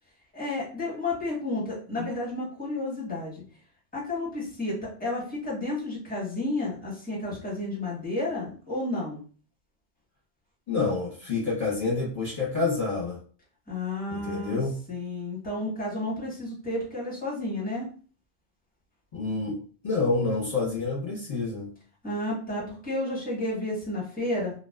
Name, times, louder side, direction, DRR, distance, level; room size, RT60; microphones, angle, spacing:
voice 1, 0.3-3.4 3.9-9.2 13.7-14.6 14.9-17.8 22.0-24.5, left 2 dB, 10° left, -5 dB, 1.0 m, -31 dB
voice 2, 10.7-13.2 14.1-14.8 19.1-21.7, left 3 dB, 35° left, -8 dB, 0.8 m, -28 dB
2.4 x 2.2 x 2.3 m, 0.41 s
omnidirectional pair, 1.2 m